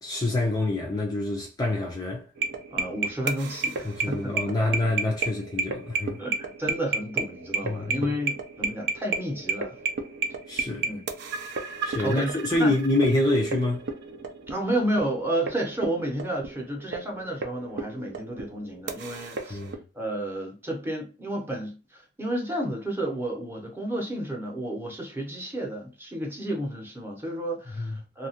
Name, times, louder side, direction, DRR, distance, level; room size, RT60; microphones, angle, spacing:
voice 1, 0.0-2.3 3.8-6.2 7.6-8.1 10.5-10.9 11.8-13.9 19.5-19.8 27.7-28.0, left 2 dB, 20° left, 0.4 m, -26 dB
sound 1, 2.4-19.8, right 4 dB, 55° right, 0.5 m, -33 dB
voice 2, 2.7-4.3 6.2-9.8 10.8-11.1 12.0-12.7 14.5-19.6 19.9-28.3, right 1 dB, 10° right, 0.7 m, -31 dB
2.7 x 2.3 x 2.8 m
head